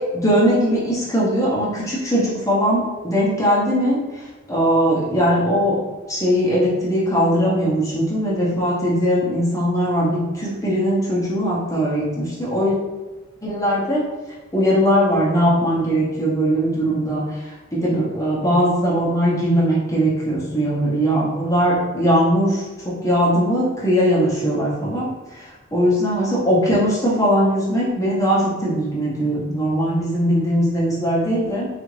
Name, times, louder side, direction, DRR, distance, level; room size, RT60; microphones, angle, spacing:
voice 1, 0.1-4.0 4.5-5.7 6.1-12.7 13.4-14.0 14.5-17.2 17.7-25.1 25.4-31.7, equal, 15° left, -7 dB, 0.8 m, -20 dB
3.5 x 2.5 x 3.2 m, 1.2 s
head